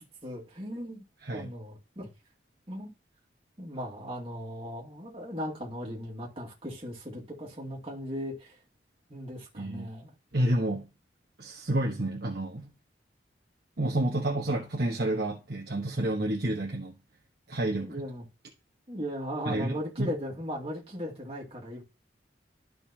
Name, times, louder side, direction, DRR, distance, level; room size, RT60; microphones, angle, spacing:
voice 1, 0.0-1.0 1.3-2.1 2.7-2.9 3.6-8.6 9.1-10.1 17.8-18.2 18.9-21.8, equal, 30° right, 2.1 m, -37 dB
voice 2, 9.5-9.9 10.3-10.9 11.4-12.7 13.8-17.0 17.5-18.0 19.4-20.1, right 1 dB, 55° right, 1.2 m, -30 dB
12.0 x 5.3 x 2.9 m
head